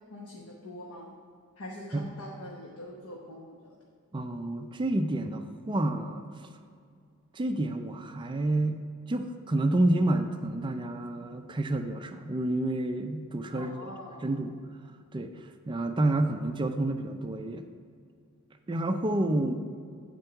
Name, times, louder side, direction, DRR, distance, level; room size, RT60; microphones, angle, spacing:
voice 1, 0.1-1.1 1.6-3.8 13.5-14.3, left 1 dB, 85° left, -2 dB, 1.0 m, -43 dB
voice 2, 4.1-6.2 7.3-8.8 9.1-13.8 14.2-14.5 15.1-15.3 15.7-17.6 18.7-19.5, right 1 dB, 20° right, 6 dB, 0.4 m, -29 dB
9.2 x 4.4 x 5.7 m, 2.2 s
head